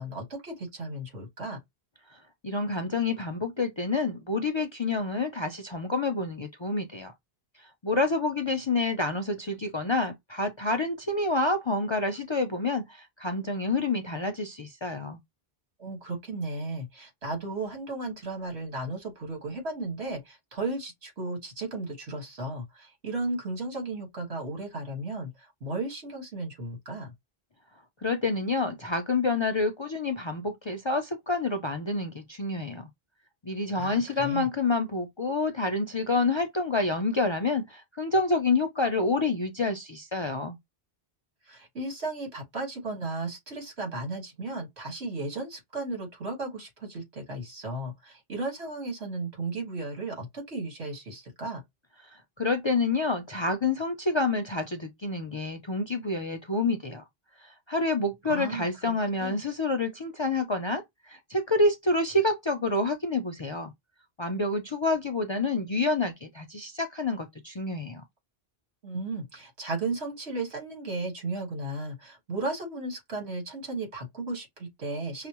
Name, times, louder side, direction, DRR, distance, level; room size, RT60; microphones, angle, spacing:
voice 1, 0.0-1.6 15.8-27.1 33.7-34.5 41.5-51.6 58.3-58.9 59.2-59.4 68.8-75.3, right 2 dB, 85° right, 2.0 m, -35 dB
voice 2, 2.4-7.1 7.8-15.2 28.0-32.9 33.4-40.6 52.4-57.0 57.4-63.7 64.2-68.0, left 3 dB, 40° left, 0.4 m, -28 dB
5.6 x 2.0 x 2.9 m
omnidirectional pair, 1.1 m